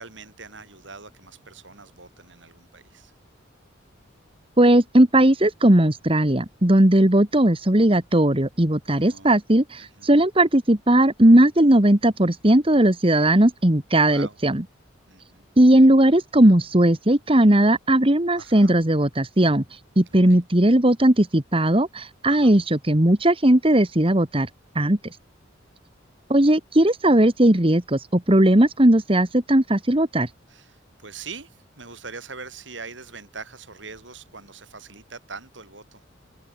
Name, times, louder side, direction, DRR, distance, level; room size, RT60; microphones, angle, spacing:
voice 1, 0.0-3.1 8.8-9.4 9.8-10.3 14.0-14.4 15.1-15.5 18.3-18.7 20.3-20.4 22.3-22.6 30.5-36.0, right 4 dB, 75° right, 6.6 m, -42 dB
voice 2, 4.6-14.6 15.6-24.5 24.8-25.0 26.3-30.3, right 1 dB, 30° right, 1.8 m, -18 dB
head